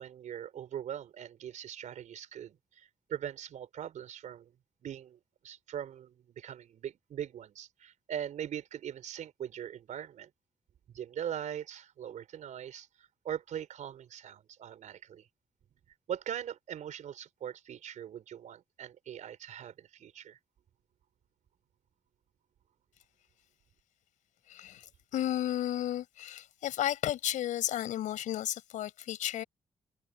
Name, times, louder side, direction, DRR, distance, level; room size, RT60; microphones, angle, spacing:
voice 1, 0.0-4.5 4.8-5.2 5.4-10.3 10.9-15.3 16.1-20.4, right 9 dB, 70° right, 4.5 m, -41 dB
voice 2, 24.5-24.9 25.1-29.4, left 12 dB, 80° left, 4.6 m, -33 dB
hypercardioid pair, 40°, 13 cm